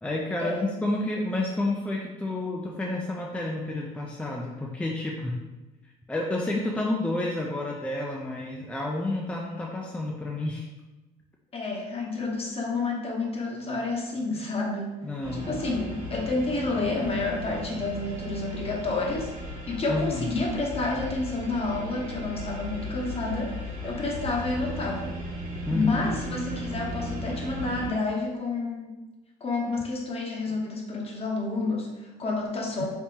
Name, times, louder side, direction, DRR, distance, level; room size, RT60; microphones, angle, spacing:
voice 1, 0.0-5.4 6.1-10.7 15.0-15.6 19.9-20.3 25.7-26.1, left 2 dB, 10° left, -2 dB, 0.3 m, -30 dB
voice 2, 11.5-15.0 15.3-25.2 25.7-28.9 29.4-32.9, left 3 dB, 35° left, -1 dB, 0.8 m, -29 dB
sound 1, 15.2-27.9, equal, 55° right, 1.3 m, -36 dB
3.6 x 2.9 x 2.8 m, 1.1 s
cardioid pair, 110°, 17 cm